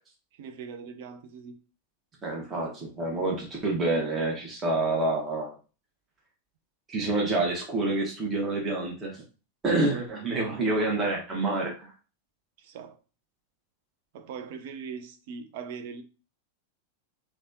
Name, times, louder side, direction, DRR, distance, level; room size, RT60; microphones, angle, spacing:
voice 1, 0.3-1.6 12.6-13.0 14.1-16.0, right 6 dB, 50° right, 7 dB, 0.5 m, -40 dB
voice 2, 2.2-5.5 6.9-9.2 9.6-11.9, right 2 dB, 20° right, -1 dB, 1.0 m, -28 dB
3.2 x 2.3 x 2.6 m, 0.33 s
figure-of-eight pair, 90°, 0 cm